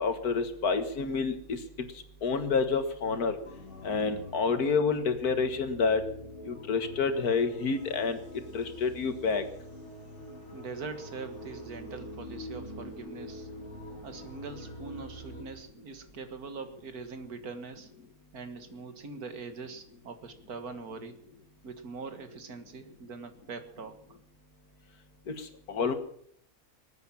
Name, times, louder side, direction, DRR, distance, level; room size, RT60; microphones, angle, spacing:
voice 1, 0.0-1.6 2.2-3.4 3.8-6.0 6.5-8.2 8.5-9.4 25.3-25.9, left 5 dB, 85° left, 8 dB, 2.1 m, -28 dB
sound 1, 3.4-15.4, left 1 dB, 50° left, 2.7 m, -45 dB
voice 2, 10.5-13.5 14.0-17.9 18.3-21.2 21.6-24.0, right 4 dB, 80° right, 8 dB, 2.1 m, -42 dB
19.5 x 9.2 x 7.3 m, 0.64 s
omnidirectional pair, 1.6 m